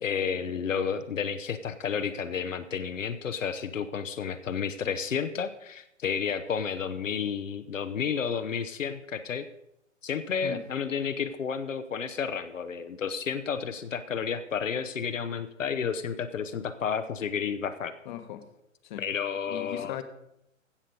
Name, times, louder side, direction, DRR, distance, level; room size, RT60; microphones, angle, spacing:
voice 1, 0.0-9.5 10.0-17.9 19.0-20.0, left 7 dB, 70° left, 9 dB, 0.9 m, -31 dB
voice 2, 18.0-18.4 18.8-19.0 19.5-20.0, left 12 dB, 35° left, 9 dB, 1.1 m, -38 dB
16.0 x 6.6 x 5.2 m, 0.82 s
figure-of-eight pair, 125°, 40 cm